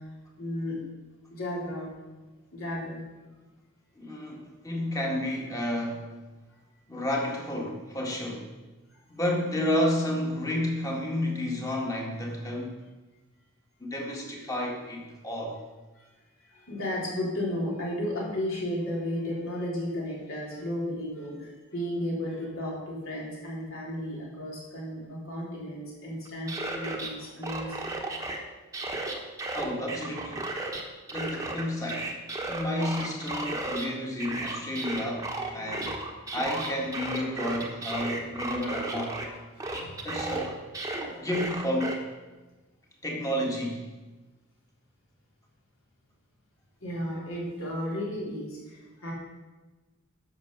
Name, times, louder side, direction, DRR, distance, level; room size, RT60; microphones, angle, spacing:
voice 1, 0.4-0.8 1.3-2.0 2.5-3.0 16.0-16.1 16.5-27.9 39.2-40.0 41.0-41.1 46.8-49.1, left 1 dB, 65° left, -4 dB, 3.7 m, -34 dB
voice 2, 4.0-6.1 6.9-8.5 9.1-12.7 13.8-15.6 29.5-30.5 31.1-32.1 32.5-36.0 36.3-39.2 40.0-40.6 41.2-42.0 43.0-43.8, left 1 dB, 15° left, -1 dB, 1.8 m, -31 dB
sound 1, 26.3-27.1 27.4-28.4 28.7-30.8 31.1-33.9 34.2-39.3 39.6-42.0, right 2 dB, 15° right, 1.1 m, -34 dB
10.5 x 6.4 x 6.6 m, 1.2 s
head